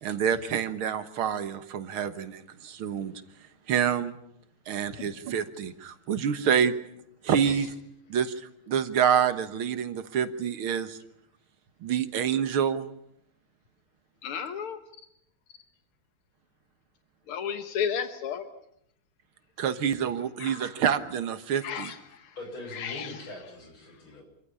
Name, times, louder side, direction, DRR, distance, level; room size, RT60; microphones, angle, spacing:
voice 1, 0.0-3.1 3.7-4.1 4.7-6.7 7.2-7.7 8.1-8.3 8.7-11.0 11.8-12.9 19.6-21.9, right 8 dB, 75° right, 11 dB, 2.1 m, -27 dB
voice 2, 14.2-14.8 17.3-18.4 20.4-20.7 21.6-22.0 22.8-23.1, left 7 dB, 85° left, 9 dB, 2.1 m, -32 dB
voice 3, 22.4-24.2, left 2 dB, 70° left, 2 dB, 7.8 m, -42 dB
26.5 x 15.0 x 10.0 m, 0.76 s
omnidirectional pair, 2.4 m